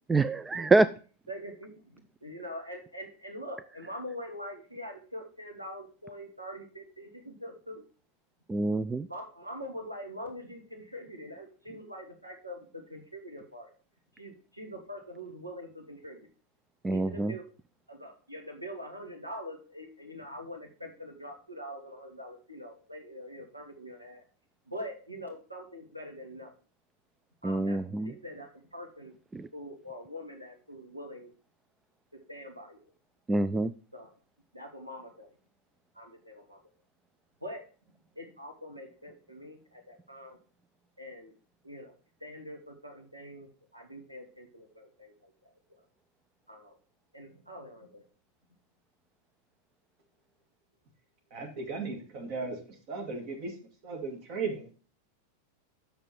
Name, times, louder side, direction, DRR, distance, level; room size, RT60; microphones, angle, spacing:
voice 1, 0.1-0.9 8.5-9.1 16.8-17.3 27.4-28.1 29.3-29.5 33.3-33.7, right 3 dB, 10° right, 13 dB, 0.3 m, -26 dB
voice 2, 1.3-7.8 9.1-13.7 14.1-16.3 16.9-17.4 17.9-24.2 24.7-26.5 27.4-29.2 29.5-31.3 32.3-32.9 33.9-34.1 34.5-35.3 35.9-36.6 37.4-37.6 38.1-40.4 41.0-41.3 41.6-41.9 42.2-45.9 46.5-46.8 47.1-48.1, equal, 85° right, 2 dB, 1.8 m, -44 dB
voice 3, 51.3-52.6 52.9-53.5 53.8-54.8, right 4 dB, 45° right, 3 dB, 2.2 m, -36 dB
6.8 x 6.6 x 4.4 m, 0.38 s
figure-of-eight pair, 90°, 0 cm